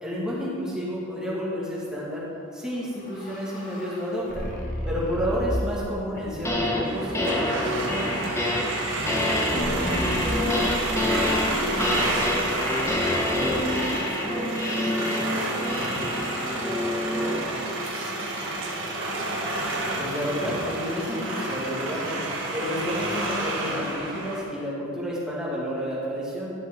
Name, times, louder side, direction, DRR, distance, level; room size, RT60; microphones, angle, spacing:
voice 1, 0.0-2.3 2.5-4.5 4.9-7.7 20.0-22.2 22.5-26.5, equal, 5° right, -7 dB, 1.8 m, -30 dB
sound 1, 2.6-6.0 6.4-7.0 9.5-13.6, equal, 40° left, 1.3 m, -35 dB
sound 2, 6.2-6.8 7.1-17.6, left 1 dB, 15° left, 0.8 m, -27 dB
sound 3, 6.8-24.4, right 2 dB, 60° right, 1.3 m, -30 dB
voice 2, 8.4-9.1 9.5-13.1 13.5-19.2, equal, 70° left, -4 dB, 1.9 m, -41 dB
11.5 x 6.1 x 3.6 m, 2.5 s
head